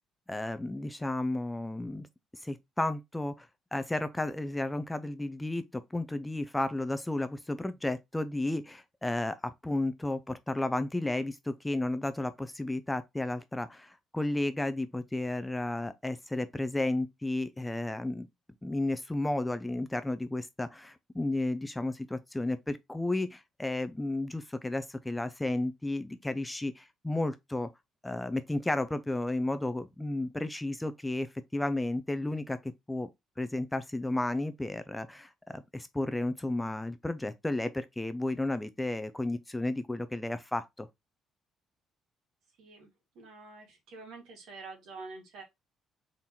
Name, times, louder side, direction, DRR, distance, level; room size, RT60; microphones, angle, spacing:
voice 1, 0.3-2.1 2.3-18.3 18.6-27.7 28.0-33.1 33.4-40.9, left 2 dB, 5° left, 0.3 m, -33 dB
voice 2, 42.6-42.9 43.2-45.4, right 3 dB, 65° right, 1.8 m, -47 dB
3.7 x 2.9 x 4.1 m
cardioid pair, 170°, 0 cm